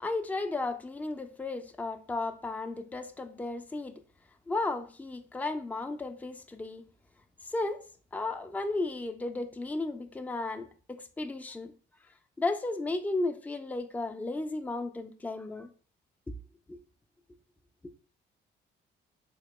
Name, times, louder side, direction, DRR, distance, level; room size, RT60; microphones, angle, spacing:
voice 1, 0.0-4.0 4.5-6.8 7.4-7.8 8.1-11.7 12.4-15.7 16.3-16.4 16.7-16.8 17.8-17.9, left 2 dB, 10° left, 0.4 m, -34 dB
3.5 x 2.9 x 3.0 m
cardioid pair, 90°, 20 cm